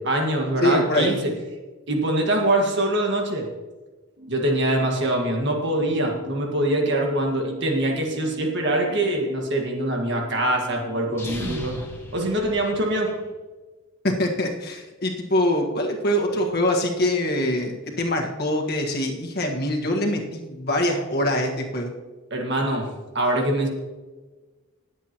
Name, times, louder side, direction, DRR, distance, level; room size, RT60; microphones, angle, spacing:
voice 1, 0.0-1.3 1.9-3.5 4.3-11.8 12.1-13.1 22.3-22.9 23.1-23.7, right 1 dB, 55° right, 1 dB, 1.8 m, -23 dB
voice 2, 0.6-1.2 14.0-21.9, left 1 dB, 45° left, 1 dB, 1.6 m, -24 dB
sound 1, 4.2-11.0, left 3 dB, 70° right, 4.2 m, -45 dB
sound 2, 11.1-13.2, left 1 dB, 10° left, 1.5 m, -35 dB
20.0 x 8.2 x 3.0 m, 1.3 s
head